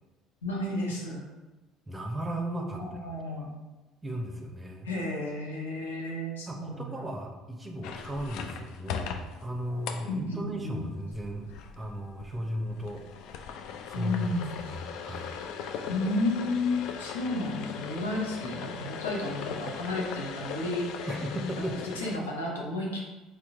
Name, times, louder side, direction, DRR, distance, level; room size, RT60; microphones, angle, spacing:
voice 1, 0.4-1.3 2.7-3.5 4.8-7.0 10.0-10.9 13.9-14.6 15.9-21.2 21.6-21.7 21.9-23.0, left 2 dB, 85° left, -2 dB, 0.7 m, -32 dB
voice 2, 1.9-2.8 3.4-3.5 4.0-4.9 6.5-11.5 11.8-13.0 13.9-14.3 14.6-15.3 21.1-21.8, equal, 15° right, 2 dB, 0.7 m, -35 dB
sound 1, 7.8-22.2, left 7 dB, 60° left, 0.3 m, -40 dB
4.5 x 2.3 x 3.6 m, 1.1 s
hypercardioid pair, 60°, 0 cm